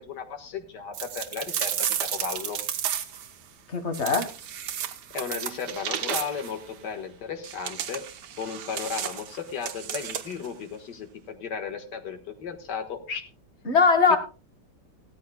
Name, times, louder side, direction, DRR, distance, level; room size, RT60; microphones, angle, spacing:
voice 1, 0.0-2.6 5.1-8.0 8.4-13.2 14.1-14.2, left 6 dB, 75° left, 7 dB, 2.1 m, -35 dB
sound 1, 0.9-3.3 3.9-6.6 7.4-10.5, right 9 dB, 75° right, 1.5 m, -32 dB
voice 2, 3.7-4.3 13.7-14.2, left 5 dB, 40° left, 7 dB, 1.6 m, -20 dB
17.0 x 13.0 x 2.2 m, 0.34 s
omnidirectional pair, 1.8 m